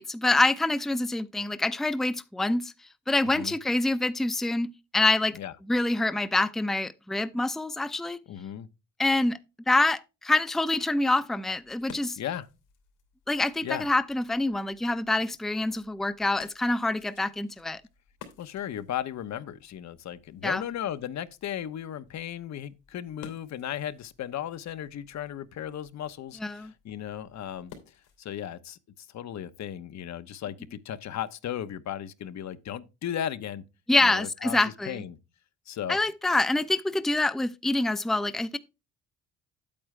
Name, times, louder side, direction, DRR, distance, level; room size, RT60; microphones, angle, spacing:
voice 1, 0.0-2.7 3.1-5.3 5.7-8.2 9.0-9.4 9.7-12.2 13.3-17.8 20.4-20.6 26.4-26.7 33.9-35.0 35.9-38.6, left 2 dB, ahead, 0.6 m, -26 dB
voice 2, 3.2-3.6 5.4-5.5 8.3-8.7 12.2-12.5 13.6-13.9 18.4-28.8 29.1-33.6 34.0-35.2 35.7-36.0, left 10 dB, 65° left, 0.9 m, -36 dB
sound 1, 11.3-28.4, left 7 dB, 90° left, 2.9 m, -55 dB
8.6 x 8.5 x 3.2 m
cardioid pair, 90°, 30 cm